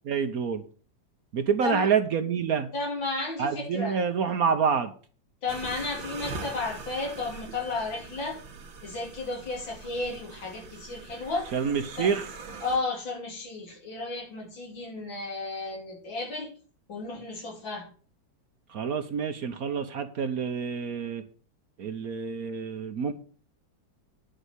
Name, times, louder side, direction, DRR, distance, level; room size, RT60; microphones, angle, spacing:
voice 1, 0.1-0.6 1.3-2.7 3.4-4.9 11.5-12.3 18.7-21.2 21.8-23.1, right 6 dB, 60° right, 9 dB, 1.2 m, -27 dB
voice 2, 2.7-4.0 5.4-8.4 8.8-11.5 12.0-12.1 12.6-16.5 16.9-17.9, left 3 dB, 80° left, 0 dB, 4.0 m, -33 dB
sound 1, 5.5-12.8, right 4 dB, 80° right, 2.2 m, -42 dB
10.0 x 5.1 x 8.1 m, 0.41 s
omnidirectional pair, 2.1 m